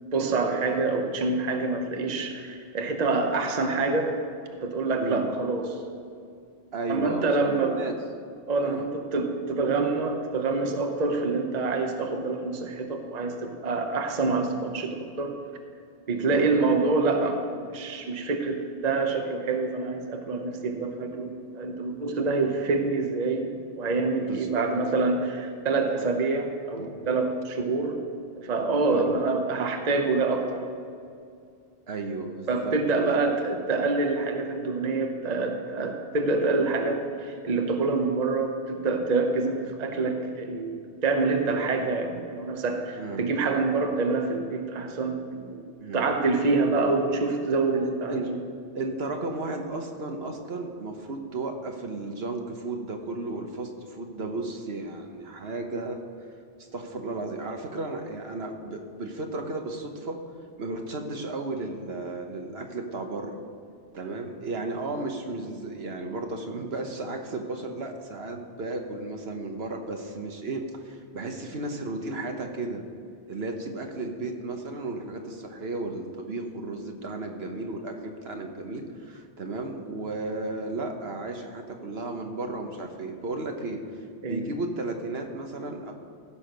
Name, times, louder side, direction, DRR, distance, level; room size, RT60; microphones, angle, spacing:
voice 1, 0.1-4.2 4.5-5.8 6.9-7.9 8.5-15.4 16.1-28.0 28.4-30.6 32.5-45.6 45.9-48.4 84.2-84.5, right 3 dB, 40° right, 4 dB, 0.9 m, -26 dB
voice 2, 6.7-7.9 8.6-8.8 16.2-16.5 22.4-22.6 24.3-24.7 26.7-26.9 28.9-29.2 31.9-33.1 43.0-43.3 45.8-46.1 46.7-46.8 47.8-48.2 48.7-56.0 56.7-60.2 60.6-63.4 63.9-72.9 73.3-83.8 84.2-85.9, right 2 dB, 65° right, 4 dB, 1.3 m, -34 dB
15.5 x 6.3 x 5.1 m, 2.4 s
omnidirectional pair, 1.1 m